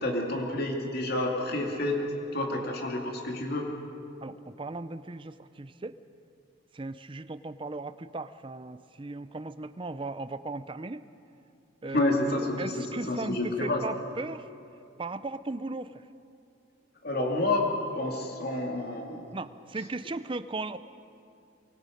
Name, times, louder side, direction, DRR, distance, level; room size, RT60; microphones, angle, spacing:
voice 1, 0.0-2.0 2.3-3.6 11.9-12.7 13.1-13.8 17.0-19.3, left 2 dB, 50° left, 1 dB, 2.6 m, -29 dB
voice 2, 4.2-6.0 6.7-11.0 11.8-12.1 12.6-14.5 15.0-16.0 19.3-20.8, right 3 dB, 25° right, 13 dB, 0.5 m, -37 dB
24.0 x 23.5 x 5.3 m, 2.6 s
head